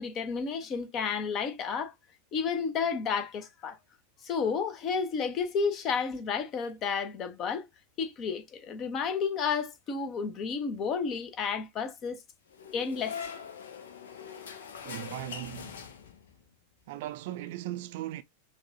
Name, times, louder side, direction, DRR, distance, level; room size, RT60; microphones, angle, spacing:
voice 1, 0.0-1.9 2.3-3.8 4.2-7.7 8.0-12.2 12.7-13.2, left 5 dB, 30° left, 0.8 m, -31 dB
sound 1, 12.5-16.4, left 6 dB, 60° left, 0.7 m, -42 dB
voice 2, 14.8-15.9 16.9-18.2, right 15 dB, 50° right, 0.4 m, -38 dB
5.7 x 2.3 x 2.6 m
figure-of-eight pair, 90°, 0 cm